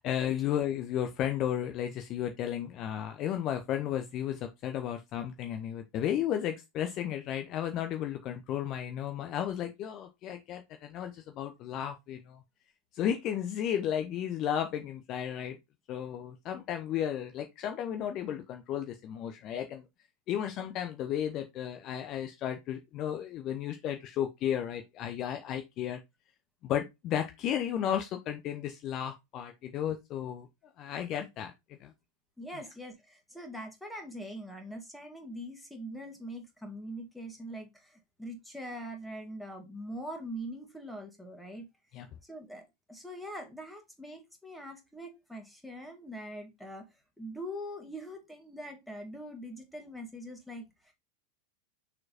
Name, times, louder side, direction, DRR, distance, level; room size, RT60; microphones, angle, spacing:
voice 1, 0.0-12.4 12.9-15.6 15.9-19.8 20.3-26.0 26.6-30.5 30.8-31.5 31.8-31.9 41.9-42.1, left 10 dB, 35° left, 0.8 m, -33 dB
voice 2, 32.4-41.7 42.2-42.6 42.9-46.9 47.2-50.9, equal, ahead, 2.1 m, -43 dB
6.4 x 4.5 x 4.2 m
figure-of-eight pair, 90°, 0 cm